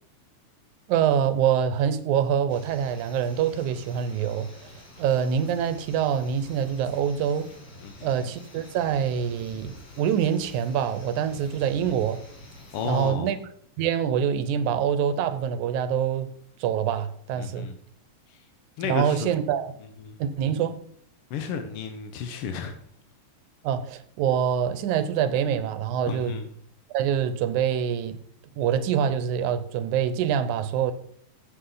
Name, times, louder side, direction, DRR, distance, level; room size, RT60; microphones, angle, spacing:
voice 1, 0.9-4.7 5.0-7.5 8.0-12.2 12.9-13.4 13.8-16.3 16.6-17.7 18.8-19.7 20.2-20.8 23.6-26.4 26.9-28.2 28.6-30.9, right 8 dB, 90° right, 2.2 m, -25 dB
sound 1, 2.5-13.1, left 1 dB, 55° left, 3.2 m, -47 dB
voice 2, 7.8-8.1 12.7-13.3 17.4-17.8 18.3-18.4 18.8-19.3 20.0-20.2 21.3-22.8 26.1-26.5, left 6 dB, 70° left, 1.4 m, -32 dB
15.5 x 6.9 x 3.9 m
omnidirectional pair, 3.3 m